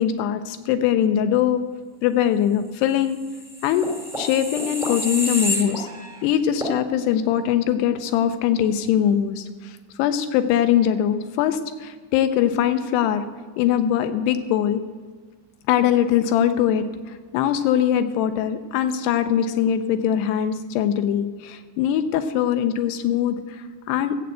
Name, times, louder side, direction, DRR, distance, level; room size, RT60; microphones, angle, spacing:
voice 1, 0.0-1.7 2.0-3.2 3.6-5.9 6.2-13.2 13.6-14.8 15.7-24.2, left 10 dB, 85° left, 9 dB, 2.5 m, -22 dB
sound 1, 3.3-6.2 6.6-6.8, equal, 5° right, 0.4 m, -29 dB
14.5 x 7.7 x 7.8 m, 1.5 s
omnidirectional pair, 5.1 m